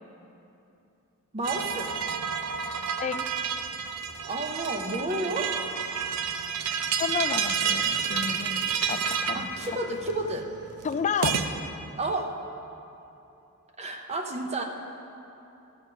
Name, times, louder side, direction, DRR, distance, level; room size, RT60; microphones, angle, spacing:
voice 1, 1.3-2.0 4.3-5.5 9.3-10.5 12.0-12.3 13.8-14.6, right 2 dB, 30° right, 3 dB, 0.8 m, -31 dB
sound 1, 1.4-11.5, right 7 dB, 80° right, 0.6 m, -30 dB
voice 2, 7.0-9.5 10.8-11.4, left 6 dB, 30° left, 11 dB, 0.3 m, -31 dB
12.5 x 4.9 x 6.4 m, 2.8 s
head